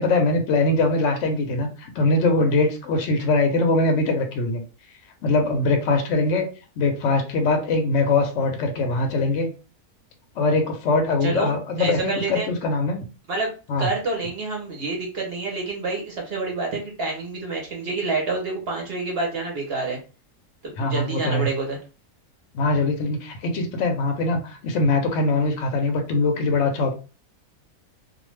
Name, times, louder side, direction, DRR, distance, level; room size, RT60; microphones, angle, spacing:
voice 1, 0.0-4.6 5.2-6.5 6.8-9.5 10.4-13.1 13.7-13.9 20.8-21.5 22.5-26.9, left 2 dB, 65° left, 4 dB, 0.8 m, -22 dB
voice 2, 11.2-12.5 13.3-13.5 13.8-20.0 20.6-21.8, right 3 dB, 55° right, 0 dB, 0.8 m, -28 dB
2.4 x 2.2 x 3.1 m, 0.34 s
omnidirectional pair, 1.6 m